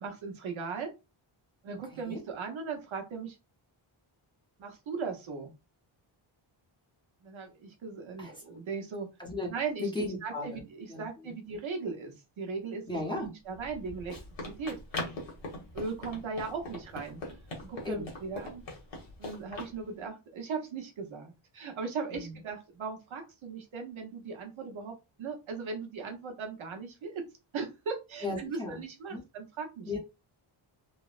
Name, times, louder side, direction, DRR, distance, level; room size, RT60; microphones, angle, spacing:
voice 1, 0.0-0.9 1.6-3.3 4.6-5.5 7.2-9.1 9.5-14.1 14.5-14.8 15.7-17.2 17.6-18.6 19.2-27.2 27.5-30.0, right 5 dB, 70° right, 3 dB, 0.9 m, -38 dB
voice 2, 1.9-2.2 8.2-8.4 9.2-9.5 9.8-10.6 10.9-11.3 12.9-13.3 17.8-18.1 22.1-22.4 28.2-28.8 29.1-29.2 29.8-30.0, left 2 dB, 10° left, -2 dB, 0.6 m, -36 dB
Run, 13.5-19.7, left 2 dB, 60° left, 1.1 m, -41 dB
3.2 x 2.1 x 2.3 m, 0.26 s
wide cardioid pair, 175°, 49 cm